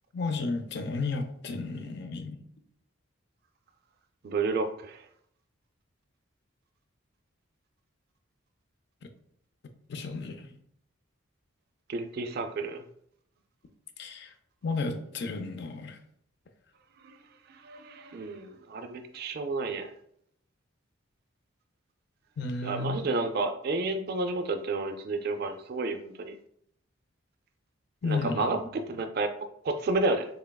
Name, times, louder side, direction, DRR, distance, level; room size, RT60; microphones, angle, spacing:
voice 1, 0.1-2.4 9.9-10.6 14.0-14.3 14.6-16.0 22.4-23.0 28.0-28.5, left 3 dB, 55° left, 0.4 m, -33 dB
voice 2, 4.2-5.1 11.9-12.8 17.0-17.2 17.5-19.9 22.6-26.4 28.0-29.3 29.6-30.3, right 3 dB, 50° right, 0.3 m, -31 dB
3.8 x 3.4 x 2.2 m
head